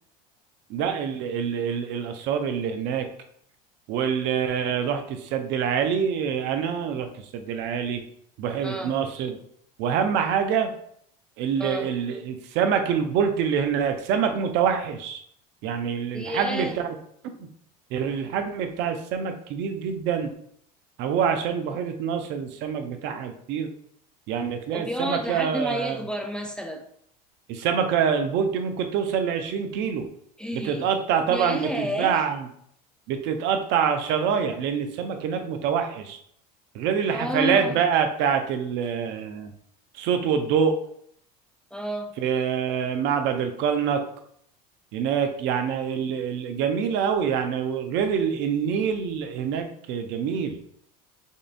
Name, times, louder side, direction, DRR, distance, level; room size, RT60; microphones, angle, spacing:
voice 1, 0.7-3.1 3.9-8.0 8.4-9.4 9.8-10.7 11.4-15.2 15.6-16.9 17.9-20.3 21.0-23.7 24.3-26.0 27.5-30.1 30.5-32.5 33.1-36.2 36.7-39.5 39.9-40.8 42.2-44.0 44.9-50.7, right 7 dB, 60° right, 6 dB, 0.6 m, -25 dB
voice 2, 8.6-9.0 11.6-11.9 16.1-16.8 24.7-26.8 30.4-30.9 31.3-32.2 37.1-37.8 41.7-42.1, equal, 5° left, 3 dB, 0.4 m, -30 dB
5.3 x 2.5 x 2.5 m, 0.66 s
supercardioid pair, 100°, 21 cm